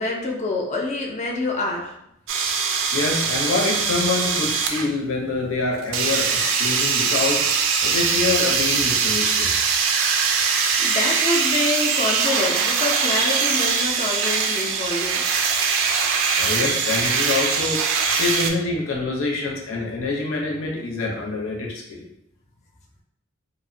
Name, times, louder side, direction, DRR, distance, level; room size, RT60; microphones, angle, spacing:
voice 1, 0.0-1.9 10.8-15.2, left 2 dB, 35° left, -1 dB, 0.3 m, -26 dB
sound 1, 2.3-4.9 5.9-18.5, right 5 dB, 70° right, 0.3 m, -22 dB
voice 2, 2.9-7.4 7.8-9.5 16.4-22.0, left 3 dB, 80° left, -1 dB, 0.6 m, -26 dB
2.7 x 2.0 x 2.6 m, 0.79 s
head